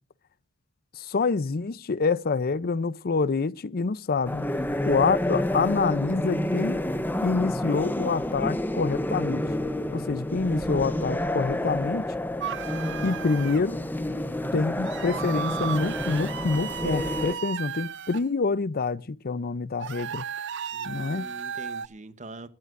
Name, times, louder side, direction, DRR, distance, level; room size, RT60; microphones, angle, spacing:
voice 1, 1.0-4.5 4.9-6.8 7.2-9.4 9.9-12.1 13.0-13.8 14.5-20.2 20.9-21.3, left 4 dB, 45° left, 0.5 m, -26 dB
sound 1, 4.2-17.3, left 1 dB, 10° left, 0.7 m, -29 dB
voice 2, 4.5-5.1 20.7-22.5, right 2 dB, 35° right, 1.0 m, -43 dB
sound 2, 12.4-13.6 14.8-18.2 19.8-21.9, right 8 dB, 60° right, 0.5 m, -35 dB
21.0 x 12.5 x 2.5 m
head